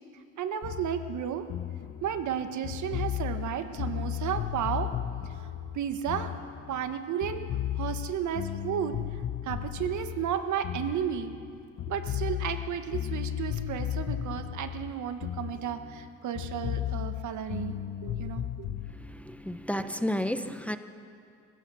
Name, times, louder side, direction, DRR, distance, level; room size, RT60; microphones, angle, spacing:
voice 1, 0.4-1.5 2.0-4.9 5.7-6.3 6.7-7.4 7.8-9.0 9.4-11.3 11.9-18.4, right 9 dB, 75° right, 9 dB, 1.3 m, -33 dB
sound 1, 0.6-6.9 7.2-11.5 11.8-16.1 16.4-18.9, left 11 dB, 60° left, 1.1 m, -35 dB
voice 2, 18.9-20.8, equal, 5° left, 9 dB, 0.9 m, -32 dB
26.0 x 16.0 x 6.3 m, 2.4 s
cardioid pair, 90°, 30 cm